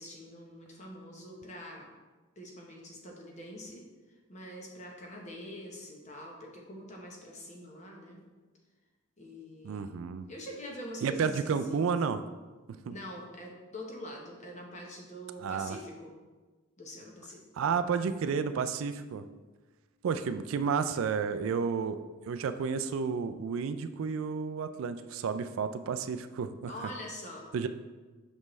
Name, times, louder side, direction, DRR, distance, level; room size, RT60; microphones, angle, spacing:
voice 1, 0.0-1.9 2.4-3.9 4.3-8.2 9.2-9.9 10.3-12.0 12.8-16.1 16.8-17.4 26.7-27.5, equal, 35° left, 0 dB, 1.0 m, -44 dB
voice 2, 9.6-10.3 11.0-12.2 12.9-13.0 15.4-15.8 17.6-19.2 20.0-26.7 27.5-27.7, right 6 dB, 75° right, 10 dB, 0.3 m, -31 dB
6.2 x 5.3 x 3.1 m, 1.3 s
head